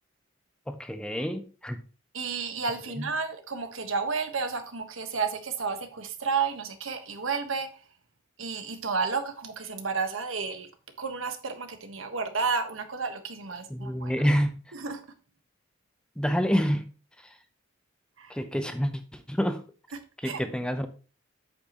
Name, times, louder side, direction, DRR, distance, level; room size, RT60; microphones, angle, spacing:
voice 1, 0.7-1.8 3.0-3.1 13.7-14.5 16.2-16.9 18.3-19.6 20.2-20.9, equal, 5° left, 0.7 m, -28 dB
voice 2, 2.1-7.7 8.4-10.7 11.0-14.1 14.7-15.0 18.2-18.4 20.2-20.4, right 5 dB, 90° right, 1.3 m, -31 dB
8.5 x 7.6 x 3.0 m
head